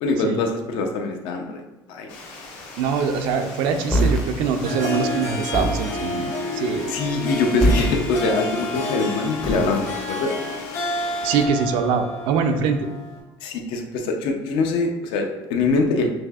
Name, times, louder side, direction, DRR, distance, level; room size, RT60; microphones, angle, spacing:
voice 1, 0.0-1.6 1.9-2.1 6.9-10.3 13.4-16.1, left 3 dB, 75° left, 3 dB, 0.6 m, -23 dB
Water, 2.1-11.5, left 3 dB, 90° left, 0.9 m, -40 dB
voice 2, 2.8-6.9 11.2-12.9, right 5 dB, 75° right, 7 dB, 0.4 m, -23 dB
sound 1, 3.9-4.2 5.5-5.9 7.6-8.0 9.4-9.8, equal, 10° left, 0.5 m, -21 dB
Harp, 4.5-13.2, left 2 dB, 35° left, 0.7 m, -30 dB
5.9 x 2.7 x 2.3 m, 1.1 s
cardioid pair, 155°, 9 cm